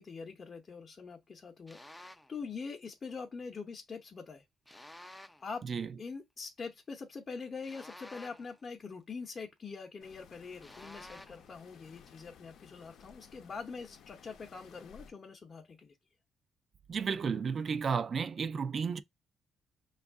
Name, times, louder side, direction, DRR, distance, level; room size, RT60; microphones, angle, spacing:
voice 1, 0.0-4.4 5.4-5.6 6.0-15.9, left 5 dB, 40° left, 0.7 m, -44 dB
sound 1, 1.7-2.4 4.7-5.5 7.6-8.6 10.6-11.5, left 1 dB, 10° left, 0.4 m, -51 dB
sound 2, 10.0-15.1, left 7 dB, 75° left, 0.6 m, -57 dB
voice 2, 16.9-19.0, right 6 dB, 45° right, 0.4 m, -33 dB
5.1 x 2.4 x 3.5 m
cardioid pair, 90°, 0 cm